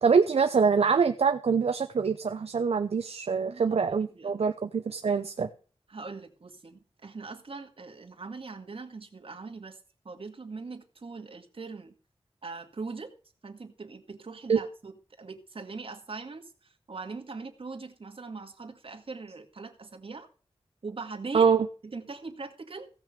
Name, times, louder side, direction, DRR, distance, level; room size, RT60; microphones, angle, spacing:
voice 1, 0.0-5.5 14.5-14.6 21.3-21.7, right 5 dB, 75° right, 8 dB, 0.7 m, -24 dB
voice 2, 3.3-4.4 5.9-9.8 10.0-11.9 12.4-13.1 13.4-14.9 15.2-20.3 20.8-21.5 21.8-22.9, right 4 dB, 60° right, 5 dB, 2.0 m, -41 dB
16.0 x 6.1 x 6.7 m, 0.39 s
wide cardioid pair, 70°, 10 cm